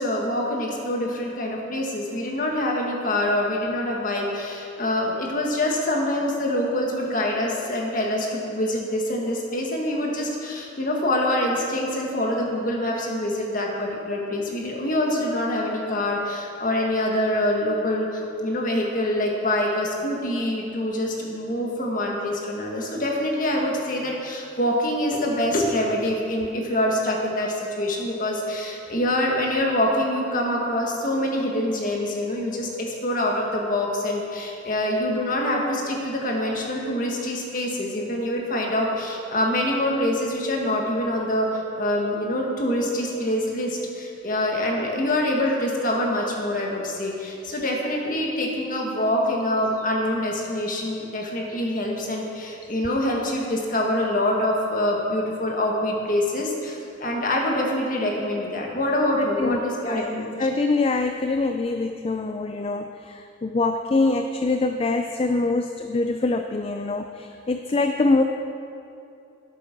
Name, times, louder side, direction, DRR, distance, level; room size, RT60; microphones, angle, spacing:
voice 1, 0.0-60.4, left 1 dB, 45° left, -1 dB, 1.8 m, -25 dB
voice 2, 59.2-59.6 59.9-60.1 60.4-68.2, left 3 dB, 30° left, 6 dB, 0.4 m, -24 dB
11.5 x 8.3 x 6.0 m, 2.7 s
head